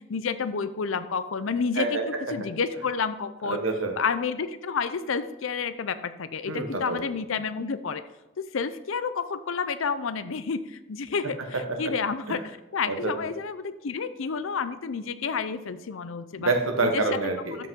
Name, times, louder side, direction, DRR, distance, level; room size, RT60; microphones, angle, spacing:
voice 1, 0.0-2.0 2.3-3.6 4.0-8.0 8.4-16.5 16.8-17.2, left 5 dB, 70° left, 13 dB, 0.5 m, -30 dB
voice 2, 3.4-3.9 6.5-7.0 12.3-12.4 12.9-13.1 16.4-17.6, right 3 dB, 70° right, 4 dB, 1.2 m, -27 dB
13.0 x 5.3 x 3.7 m, 1.0 s
head